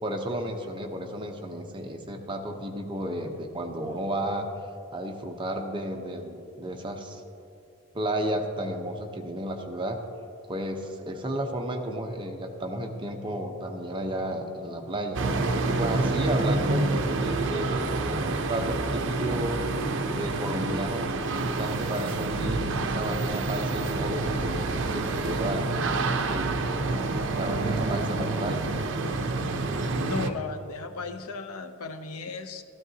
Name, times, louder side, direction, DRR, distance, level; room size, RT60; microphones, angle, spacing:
voice 1, 0.0-4.5 4.9-7.2 7.9-10.0 10.5-19.6 20.1-21.1 21.5-25.7 26.2-28.6, right 1 dB, 20° right, 3 dB, 0.8 m, -33 dB
sound 1, 15.1-30.3, right 3 dB, 55° right, 0.6 m, -28 dB
voice 2, 30.0-32.6, left 4 dB, 80° left, 8 dB, 0.7 m, -35 dB
13.5 x 12.5 x 2.8 m, 2.5 s
head